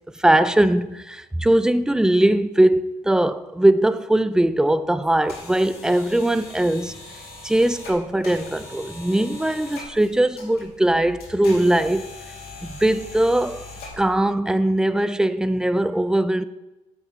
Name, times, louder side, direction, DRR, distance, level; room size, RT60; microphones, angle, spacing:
voice 1, 0.1-6.9 7.4-12.1 12.6-13.6 14.0-16.4, right 1 dB, 5° right, 0.3 m, -20 dB
sound 1, 5.0-14.2, left 2 dB, 70° left, 2.8 m, -41 dB
9.3 x 8.1 x 3.1 m
cardioid pair, 110°, 17 cm